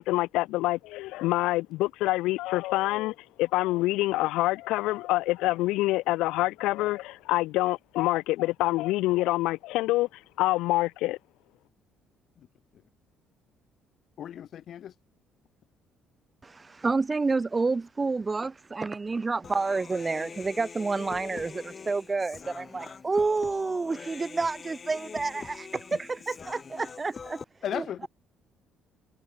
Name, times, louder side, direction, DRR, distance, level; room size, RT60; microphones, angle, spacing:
voice 1, 0.0-10.1 10.4-11.2, left 18 dB, 85° left, 0.4 m, -26 dB
voice 2, 14.2-14.9 27.6-28.1, left 10 dB, 60° left, 1.6 m, -35 dB
voice 3, 16.4-27.4 27.7-28.1, right 3 dB, 25° right, 2.5 m, -29 dB
Human voice, 19.4-27.4, left 5 dB, 35° left, 3.6 m, -44 dB
supercardioid pair, 85°, 0 cm